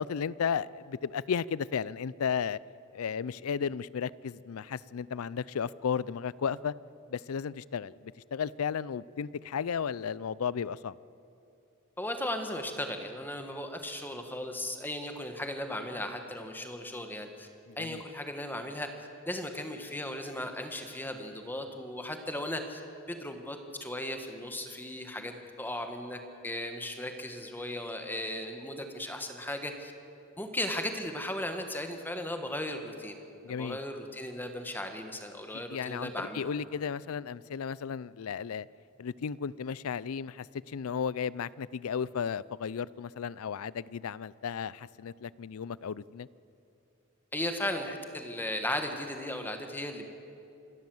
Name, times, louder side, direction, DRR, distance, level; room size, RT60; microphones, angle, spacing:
voice 1, 0.0-2.6 2.9-6.7 7.1-11.0 17.7-18.0 33.4-33.8 35.5-38.7 39.0-46.3, left 7 dB, 85° left, 21 dB, 0.4 m, -34 dB
voice 2, 12.0-17.5 17.8-18.9 19.3-22.8 23.1-29.9 30.4-33.1 33.5-36.5 47.3-50.1, left 1 dB, 10° left, 5 dB, 1.5 m, -36 dB
27.0 x 13.0 x 7.8 m, 2.7 s
head